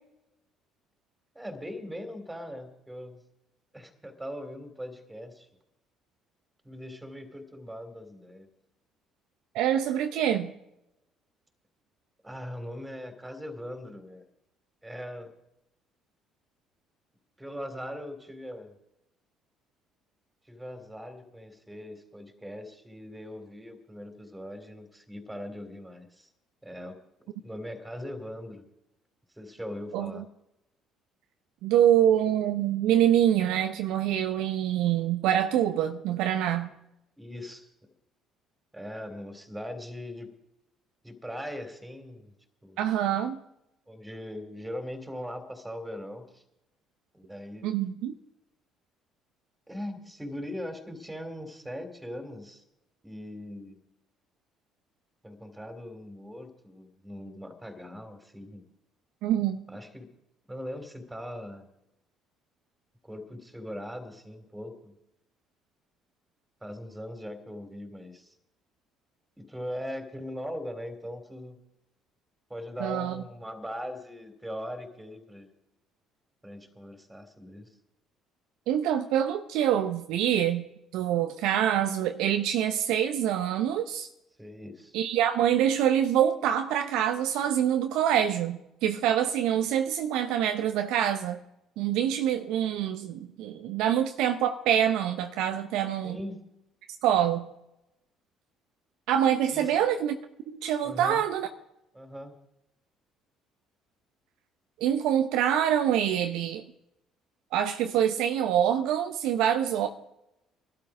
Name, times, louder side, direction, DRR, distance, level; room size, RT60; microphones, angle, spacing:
voice 1, 1.3-3.2 3.7-5.5 6.6-8.5 12.2-14.2 14.8-15.3 17.4-18.7 20.5-26.3 26.6-27.0 27.4-28.6 29.4-30.2 37.2-37.7 38.7-40.3 41.0-42.3 42.6-42.9 43.9-46.4 47.1-47.7 49.7-52.6 53.0-53.8 55.2-58.6 59.7-60.1 60.5-61.7 63.0-64.9 66.6-68.3 69.4-71.6 72.5-75.5 76.4-77.7 84.4-85.0 96.0-96.4 99.5-99.7 100.8-101.2 101.9-102.3, equal, 10° right, 3.3 m, -40 dB
voice 2, 9.5-10.5 29.9-30.2 31.6-36.7 42.8-43.4 47.6-48.1 59.2-59.6 72.8-73.2 78.7-80.6 80.9-84.1 84.9-91.4 91.8-96.2 97.0-97.5 99.1-100.2 100.5-101.5 104.8-106.6 107.5-109.9, right 10 dB, 70° right, 0.8 m, -25 dB
20.0 x 12.5 x 5.0 m
hypercardioid pair, 55°, 0 cm